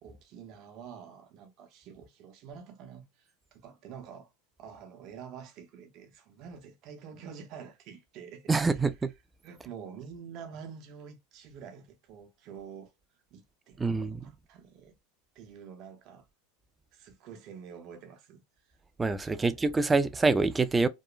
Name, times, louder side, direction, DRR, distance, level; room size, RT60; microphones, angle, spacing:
voice 1, 0.0-4.3 4.6-8.9 9.4-12.9 13.3-15.0 15.3-16.2 16.9-18.4 18.7-18.8 19.1-19.5, right 7 dB, 50° right, 0.7 m, -47 dB
voice 2, 8.5-9.1 13.8-14.2 19.0-20.9, right 3 dB, 15° right, 0.3 m, -26 dB
2.9 x 2.1 x 2.3 m
hypercardioid pair, 100°, 0 cm